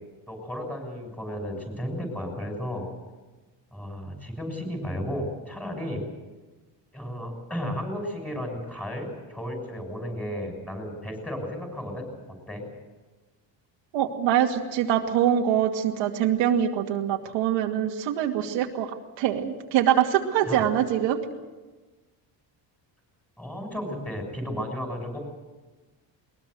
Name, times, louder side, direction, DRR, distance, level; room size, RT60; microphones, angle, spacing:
voice 1, 0.3-2.8 3.7-6.0 6.9-12.1 12.5-12.6 20.4-20.6 23.4-25.2, equal, 5° left, 3 dB, 6.5 m, -33 dB
voice 2, 13.9-18.9 19.2-21.2, right 10 dB, 85° right, 2 dB, 2.4 m, -24 dB
21.5 x 21.0 x 8.0 m, 1.2 s
cardioid pair, 150°, 44 cm